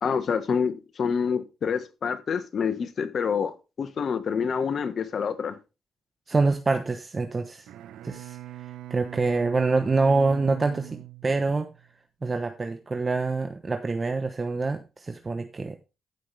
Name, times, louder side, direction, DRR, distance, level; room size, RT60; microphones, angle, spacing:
voice 1, 0.0-5.6, left 6 dB, 55° left, 1.3 m, -27 dB
voice 2, 6.3-7.7 8.0-8.4 8.9-11.7 12.2-15.8, right 3 dB, 30° right, 1.0 m, -26 dB
Bowed string instrument, 7.6-11.9, right 15 dB, 80° right, 0.8 m, -42 dB
14.5 x 5.8 x 3.4 m
supercardioid pair, 70°, 0 cm